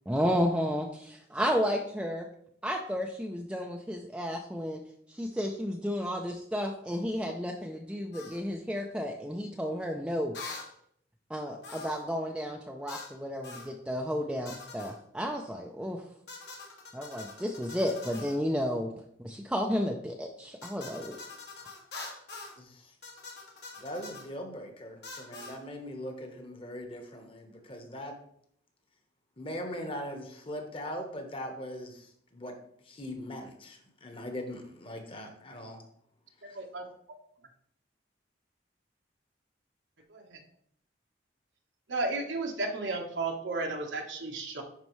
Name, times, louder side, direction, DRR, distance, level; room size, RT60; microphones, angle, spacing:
voice 1, 0.1-2.3 2.6-4.8 5.1-10.3 11.3-16.0 16.9-18.9 19.2-21.2, equal, 5° right, 1 dB, 0.4 m, -32 dB
sound 1, 8.1-8.4 10.3-10.7 11.6-12.1 12.9-13.1 13.4-13.7 14.4-15.0 16.3-18.4 20.6-22.6 23.0-24.3 25.0-25.6, left 3 dB, 65° left, 1.5 m, -44 dB
voice 2, 22.6-22.9 23.8-28.2 29.4-32.6 32.8-35.8, equal, 30° left, 4 dB, 1.1 m, -40 dB
voice 3, 41.9-44.6, right 3 dB, 80° right, 1 dB, 1.2 m, -33 dB
10.5 x 4.4 x 3.1 m, 0.68 s
head